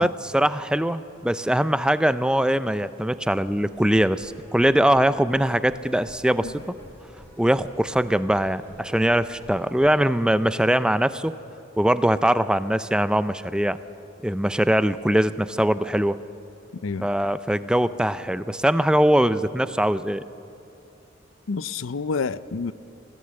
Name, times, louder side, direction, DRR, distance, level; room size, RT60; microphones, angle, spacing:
voice 1, 0.0-6.6 7.4-11.4 11.8-13.8 14.2-16.2 17.0-20.2, right 1 dB, 5° right, 0.4 m, -22 dB
sound 1, 3.4-9.9, equal, 10° left, 3.5 m, -49 dB
voice 2, 21.5-22.7, left 4 dB, 75° left, 0.6 m, -28 dB
25.5 x 16.5 x 7.7 m
head